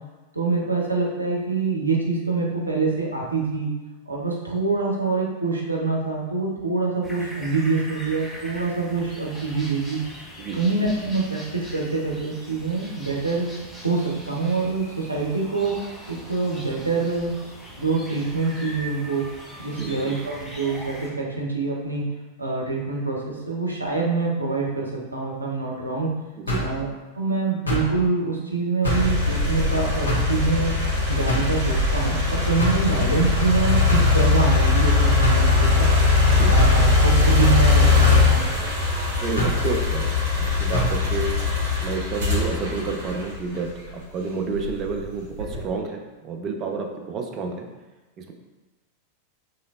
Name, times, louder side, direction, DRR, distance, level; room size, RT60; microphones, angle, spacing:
voice 1, 0.3-3.7 4.1-10.0 10.5-13.5 13.8-15.8 16.1-17.3 17.8-19.3 19.6-22.0 22.4-26.1 26.6-26.9 27.1-30.8 31.1-35.9 36.5-38.4, right 4 dB, 85° right, -2 dB, 0.5 m, -25 dB
sound 1, 7.0-21.1, equal, 10° left, 0.7 m, -41 dB
voice 2, 19.8-20.1 26.4-26.6 36.4-36.5 39.2-41.3 41.8-47.7 48.2-48.3, right 4 dB, 30° right, 3 dB, 0.4 m, -30 dB
sound 2, 26.5-26.8 27.7-27.9 28.8-29.1 30.1-30.3 31.3-31.6 32.6-32.9 33.9-34.2 35.2-35.5 36.6-36.8 38.0-38.3 39.4-39.6 40.7-41.0, equal, 80° left, 0.7 m, -25 dB
sound 3, 28.8-43.9 44.5-45.7, left 3 dB, 55° right, 1.2 m, -20 dB
3.0 x 2.6 x 2.4 m, 1.1 s
figure-of-eight pair, 90°, 0 cm